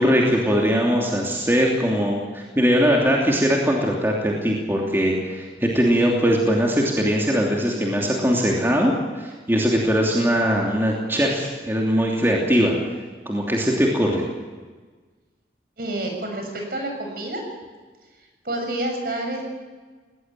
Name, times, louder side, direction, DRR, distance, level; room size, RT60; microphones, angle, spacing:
voice 1, 0.0-12.8 13.2-14.2, equal, 15° right, -2 dB, 2.9 m, -21 dB
voice 2, 15.8-17.4 18.4-19.4, right 1 dB, 55° right, 3 dB, 6.9 m, -28 dB
19.0 x 19.0 x 9.0 m, 1.4 s
head